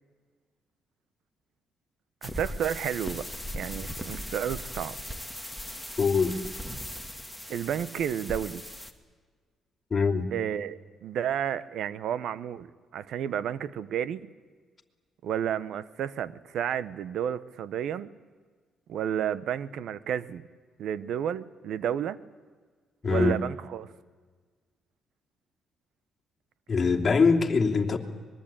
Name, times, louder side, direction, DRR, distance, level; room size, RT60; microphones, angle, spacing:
sound 1, 2.2-8.9, equal, ahead, 2.2 m, -38 dB
voice 1, 2.2-3.3 3.5-5.0 7.5-8.6 10.3-12.7 12.9-14.3 15.2-18.1 18.9-20.4 20.8-22.2 23.1-23.9, right 9 dB, 75° right, 17 dB, 0.9 m, -31 dB
voice 2, 6.0-6.4 9.9-10.3 23.0-23.4 26.7-28.0, left 4 dB, 35° left, 0 dB, 2.9 m, -23 dB
25.0 x 21.5 x 8.9 m, 1.5 s
cardioid pair, 90°, 0 cm